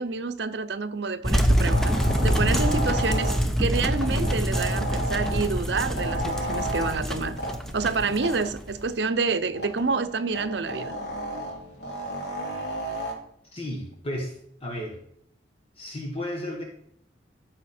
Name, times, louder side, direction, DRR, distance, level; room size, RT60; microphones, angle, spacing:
voice 1, 0.0-7.4 7.7-10.9, right 4 dB, 70° right, 0.7 m, -28 dB
sound 1, 1.2-8.9, equal, ahead, 0.7 m, -25 dB
sound 2, 1.7-13.1, equal, 60° left, 2.9 m, -34 dB
voice 2, 13.5-15.0 15.8-16.6, left 1 dB, 30° left, 1.5 m, -33 dB
14.0 x 6.2 x 4.4 m
head